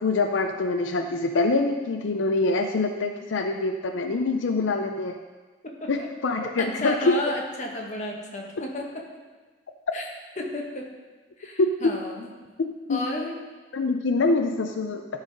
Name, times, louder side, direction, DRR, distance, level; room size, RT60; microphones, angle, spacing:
voice 1, 0.0-5.2 5.9-7.1 11.6-11.7 12.6-13.0 13.7-15.0, left 3 dB, 85° left, 5 dB, 0.5 m, -25 dB
voice 2, 5.6-6.1 6.4-9.1 9.9-10.1 10.4-10.9 11.4-12.3 12.9-13.4, left 1 dB, 40° left, 0 dB, 1.3 m, -32 dB
12.0 x 4.1 x 5.2 m, 1.3 s
head